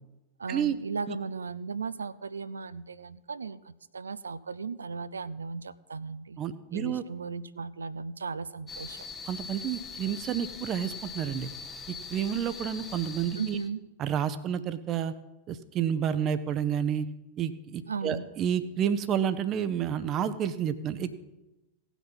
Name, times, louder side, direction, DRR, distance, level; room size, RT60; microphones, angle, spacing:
voice 1, 0.4-6.4 6.7-9.1 13.3-13.8 17.9-18.3, right 5 dB, 75° right, 16 dB, 0.4 m, -36 dB
voice 2, 6.4-7.0 9.2-11.5 12.1-13.6 14.0-15.1 15.5-17.1 17.4-21.2, right 9 dB, 30° right, 13 dB, 0.7 m, -30 dB
sound 1, 8.7-13.7, left 5 dB, 20° left, 0.9 m, -42 dB
17.0 x 6.1 x 5.5 m, 1.0 s
figure-of-eight pair, 90°, 0 cm